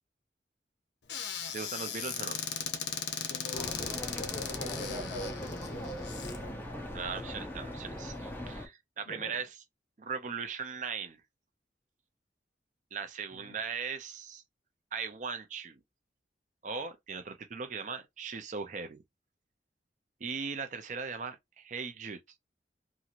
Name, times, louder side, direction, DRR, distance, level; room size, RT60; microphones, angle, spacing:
Squeak / Cupboard open or close, 1.1-6.4, left 7 dB, 80° left, 0.7 m, -38 dB
voice 1, 1.5-2.4 6.9-9.6 10.0-11.2 12.9-14.4 14.9-15.8 16.6-19.0 20.2-22.2, right 5 dB, 45° right, 0.5 m, -39 dB
voice 2, 3.3-6.6 9.1-9.4 13.3-13.6, left 1 dB, 45° left, 1.0 m, -44 dB
sound 1, 3.5-8.7, left 1 dB, 10° left, 0.5 m, -40 dB
2.9 x 2.5 x 2.5 m
head